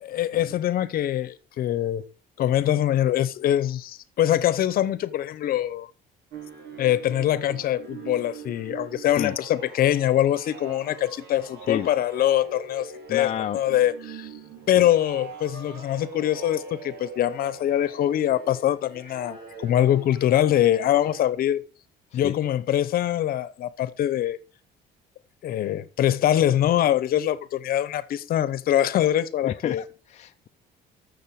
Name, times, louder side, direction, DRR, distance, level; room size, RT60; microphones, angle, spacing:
voice 1, 0.0-2.0 2.4-5.9 6.8-14.3 14.7-21.6 22.1-24.4 25.4-29.8, left 12 dB, 60° left, 0.9 m, -23 dB
sound 1, 6.3-21.3, right 5 dB, 75° right, 2.5 m, -42 dB
voice 2, 13.1-13.6 14.8-14.9 22.1-22.3 29.4-30.5, left 10 dB, 40° left, 0.5 m, -30 dB
14.0 x 6.6 x 4.8 m
cardioid pair, 110°, 17 cm